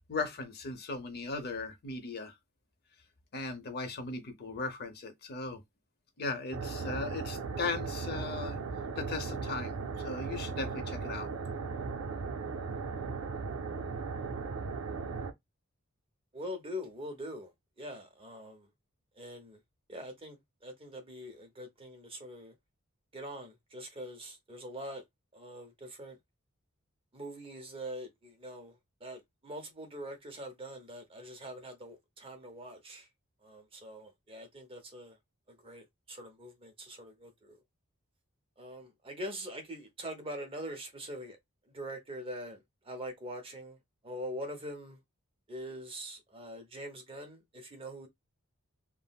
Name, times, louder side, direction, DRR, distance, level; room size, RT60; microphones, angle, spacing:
voice 1, 0.1-2.3 3.3-5.6 6.2-8.6 9.0-11.3, left 3 dB, 50° left, 0.6 m, -37 dB
Dark Ambient Loop, 6.5-15.3, right 4 dB, 75° right, 0.5 m, -37 dB
voice 2, 16.3-18.7 19.2-19.6 19.9-22.5 23.1-25.0 25.3-26.2 27.1-33.1 33.4-35.2 35.5-37.6 38.6-41.4 41.7-43.8 44.0-45.0 45.5-48.1, equal, 25° right, 0.7 m, -43 dB
3.6 x 2.0 x 2.2 m
head